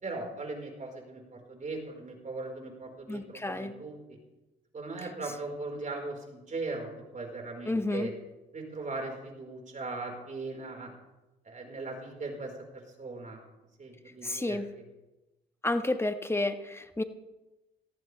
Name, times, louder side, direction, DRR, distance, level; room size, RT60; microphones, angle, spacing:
voice 1, 0.0-4.0 4.7-6.9 7.1-8.1 8.5-10.9 11.4-12.5 13.0-13.4 13.8-14.9, right 3 dB, 45° right, 1 dB, 4.8 m, -39 dB
voice 2, 3.1-3.7 7.7-8.1 14.2-14.7 15.6-17.0, left 2 dB, 15° left, 8 dB, 1.5 m, -30 dB
18.0 x 14.5 x 3.5 m, 1.0 s
supercardioid pair, 60°, 19 cm